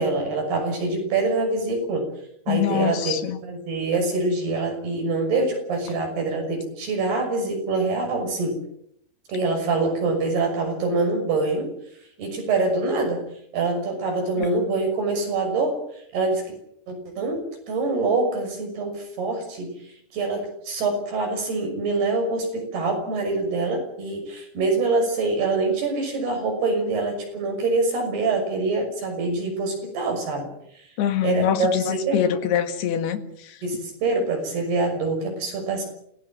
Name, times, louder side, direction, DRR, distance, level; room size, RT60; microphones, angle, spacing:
voice 1, 0.0-2.1 2.5-8.6 9.3-11.7 12.2-13.2 13.5-15.8 16.1-16.5 16.9-19.7 20.1-30.5 31.2-32.2 33.6-35.8, right 3 dB, 85° right, 4 dB, 8.2 m, -25 dB
voice 2, 2.5-3.4 31.0-33.6, left 9 dB, 85° left, 8 dB, 3.8 m, -24 dB
27.5 x 17.5 x 7.7 m, 0.73 s
omnidirectional pair, 4.5 m